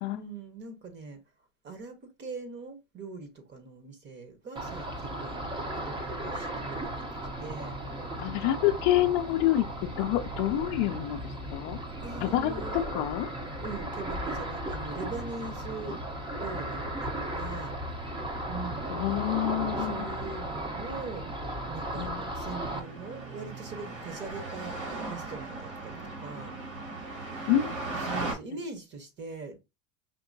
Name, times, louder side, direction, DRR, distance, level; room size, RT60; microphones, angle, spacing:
voice 1, 0.1-1.2 1.6-5.4 5.7-7.1 7.4-7.8 12.0-12.8 13.6-16.0 16.4-17.7 18.5-18.9 19.8-21.3 21.7-24.8 25.1-26.5 28.0-29.6, right 4 dB, 30° right, 1.0 m, -41 dB
Ocean, 4.6-22.8, right 1 dB, 15° right, 0.6 m, -36 dB
voice 2, 8.2-11.2 11.5-11.8 12.2-13.3 18.9-20.1 22.0-22.3 27.5-27.7, left 13 dB, 50° left, 0.5 m, -27 dB
sound 1, 22.6-28.3, right 2 dB, 80° right, 2.4 m, -37 dB
5.2 x 2.7 x 2.6 m
supercardioid pair, 120°, 39 cm